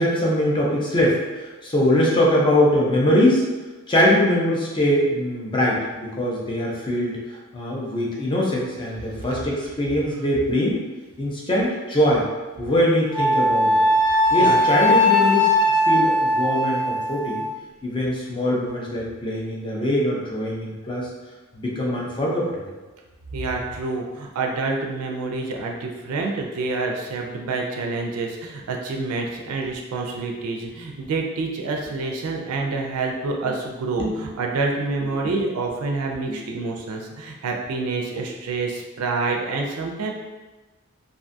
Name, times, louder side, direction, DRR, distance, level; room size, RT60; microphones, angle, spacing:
voice 1, 0.0-3.4 3.9-7.2 7.5-10.8 11.2-12.2 12.6-13.9 14.3-15.5 15.8-17.4 17.8-21.1 21.5-22.7 34.0-34.3 36.3-36.4, left 1 dB, 20° left, -3 dB, 0.5 m, -22 dB
Wind instrument woodwind instrument, 13.1-17.5, left 1 dB, 20° right, 0.7 m, -19 dB
voice 2, 23.3-40.1, right 3 dB, 90° right, 1 dB, 0.4 m, -27 dB
2.5 x 2.3 x 2.5 m, 1.2 s
head